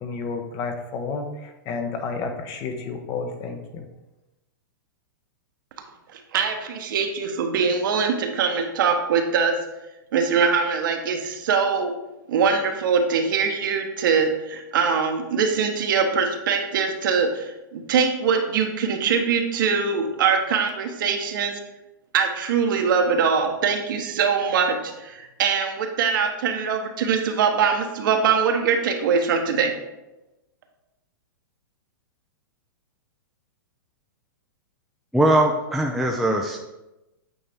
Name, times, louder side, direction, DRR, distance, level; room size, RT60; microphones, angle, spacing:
voice 1, 0.0-3.8, left 4 dB, 35° left, 6 dB, 0.9 m, -31 dB
voice 2, 6.1-9.5 10.1-11.9 12.3-21.5 22.1-29.7, right 6 dB, 65° right, 4 dB, 1.1 m, -22 dB
voice 3, 35.1-36.6, right 1 dB, ahead, 0 dB, 0.4 m, -20 dB
8.7 x 4.1 x 3.5 m, 0.98 s
hypercardioid pair, 135°, 11 cm